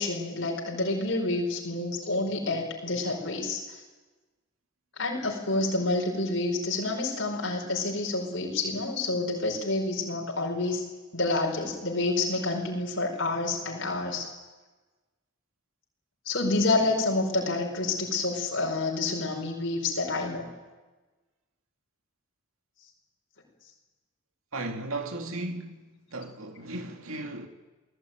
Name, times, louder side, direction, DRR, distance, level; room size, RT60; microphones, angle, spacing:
voice 1, 0.0-3.8 5.0-10.8 11.1-14.3 16.2-20.5, left 2 dB, 60° left, 5.0 m, -28 dB
voice 2, 24.5-27.5, right 2 dB, 85° right, 2.3 m, -36 dB
28.0 x 18.0 x 9.2 m
head